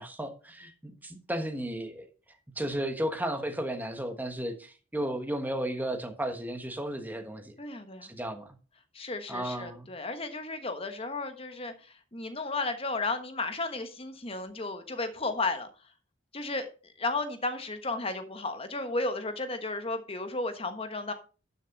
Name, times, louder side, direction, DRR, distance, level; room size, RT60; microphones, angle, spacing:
voice 1, 0.0-2.1 2.6-7.5 8.1-8.5 9.3-9.9, right 1 dB, 10° right, 1.3 m, -34 dB
voice 2, 7.6-8.1 8.9-15.7 16.3-21.1, left 3 dB, 30° left, 1.3 m, -34 dB
12.0 x 6.8 x 4.0 m
head